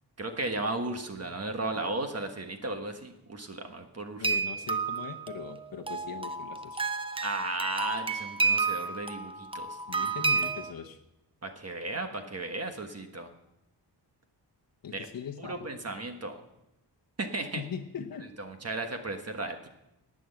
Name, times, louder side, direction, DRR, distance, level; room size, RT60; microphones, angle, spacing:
voice 1, 0.2-4.3 7.2-9.8 11.4-13.3 14.9-15.1 15.4-16.4 17.2-17.6 18.4-19.7, right 2 dB, 35° right, 5 dB, 1.4 m, -35 dB
voice 2, 4.2-6.8 9.9-11.0 14.8-15.7 17.6-18.3, left 7 dB, 55° left, 2 dB, 1.0 m, -40 dB
sound 1, 4.2-10.7, right 4 dB, 15° right, 0.6 m, -31 dB
18.5 x 6.3 x 7.8 m, 0.88 s
wide cardioid pair, 140°, 42 cm